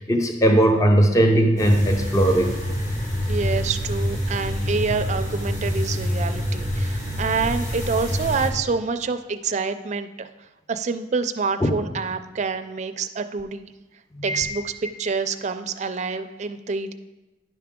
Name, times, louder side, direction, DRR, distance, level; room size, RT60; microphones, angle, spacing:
voice 1, 0.0-2.5 11.6-11.7 14.3-14.5, right 1 dB, 20° left, 4 dB, 0.5 m, -18 dB
sound 1, 1.6-8.5, equal, 45° left, 1.8 m, -26 dB
voice 2, 3.3-10.3 10.7-13.7 14.2-16.9, right 4 dB, 40° right, 8 dB, 0.4 m, -27 dB
10.0 x 5.8 x 3.6 m, 1.1 s
head